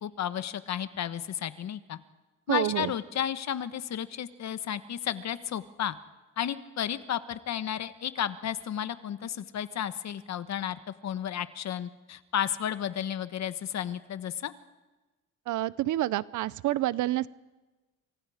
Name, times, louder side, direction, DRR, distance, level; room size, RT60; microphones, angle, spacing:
voice 1, 0.0-2.0 2.5-5.9 6.4-14.5, left 10 dB, 65° left, 12 dB, 1.3 m, -33 dB
voice 2, 2.5-2.9 15.5-17.3, right 15 dB, 80° right, 19 dB, 0.7 m, -28 dB
28.0 x 24.5 x 5.0 m, 1.2 s
cardioid pair, 90°, 30 cm